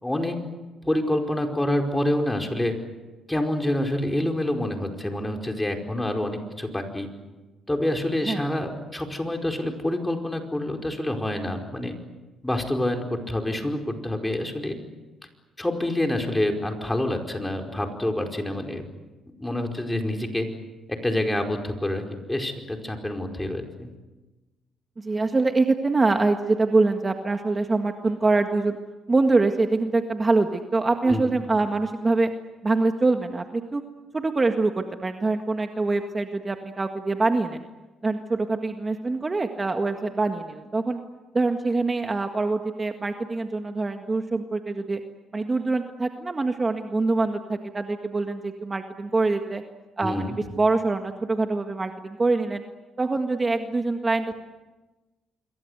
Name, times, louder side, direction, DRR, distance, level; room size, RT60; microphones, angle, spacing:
voice 1, 0.0-0.4 0.8-2.7 3.3-7.1 7.7-11.9 12.4-14.8 15.6-18.8 19.4-20.5 21.0-22.0 22.3-23.9 31.1-31.3 50.0-50.4, left 1 dB, 10° left, 3 dB, 4.8 m, -27 dB
voice 2, 25.0-28.8 29.1-32.3 32.6-33.8 34.1-37.6 38.0-41.0 41.3-45.0 45.3-49.6 50.0-52.6 53.0-54.3, right 3 dB, 25° right, 5 dB, 1.8 m, -24 dB
27.0 x 23.0 x 8.2 m, 1.2 s
cardioid pair, 90°, 0 cm